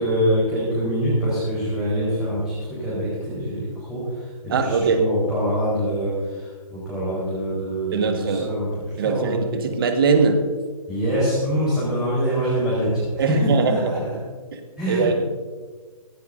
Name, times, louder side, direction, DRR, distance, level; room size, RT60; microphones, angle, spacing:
voice 1, 0.0-9.4 10.9-14.1 14.8-15.2, equal, 5° right, -10 dB, 4.2 m, -24 dB
voice 2, 4.5-5.0 7.9-8.5 9.0-10.4 13.2-14.0 14.5-14.6 14.9-15.2, right 5 dB, 40° right, 6 dB, 1.6 m, -21 dB
17.5 x 16.0 x 2.7 m, 1.4 s
figure-of-eight pair, 135°, 19 cm